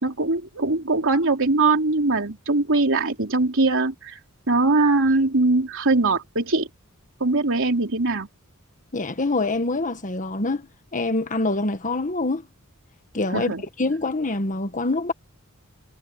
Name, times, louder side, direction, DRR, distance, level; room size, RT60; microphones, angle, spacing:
voice 1, 0.0-4.2 4.5-6.7 7.2-8.3 13.3-13.6, right 3 dB, 60° right, 3.6 m, -21 dB
voice 2, 8.9-10.7 10.9-12.4 13.1-13.5 13.8-15.1, left 2 dB, 35° left, 1.6 m, -25 dB
head